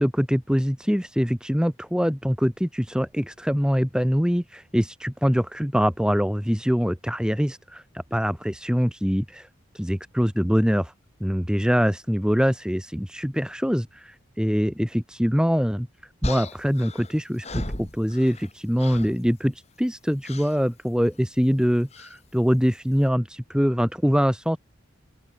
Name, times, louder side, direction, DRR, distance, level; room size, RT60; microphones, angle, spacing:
voice 1, 0.0-7.8 8.1-9.5 9.7-10.9 11.2-15.9 16.2-24.6, equal, 5° right, 4.3 m, -24 dB
sound 1, 16.2-18.5 18.8-19.2 20.2-20.6 21.9-22.2, left 1 dB, 35° left, 4.5 m, -34 dB
open air
head